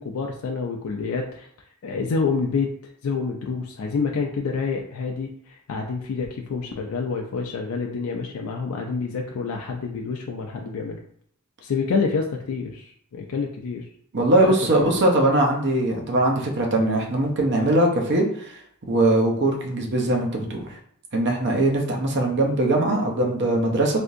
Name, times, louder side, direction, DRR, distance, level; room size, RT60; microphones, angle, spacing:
voice 1, 0.0-1.5 1.8-2.7 3.0-11.0 11.6-13.8 14.3-15.0, left 4 dB, 70° left, 1 dB, 0.4 m, -28 dB
voice 2, 14.1-18.3 18.9-20.6 21.1-24.0, right 1 dB, 55° right, 1 dB, 0.7 m, -21 dB
3.5 x 2.7 x 2.5 m, 0.64 s
head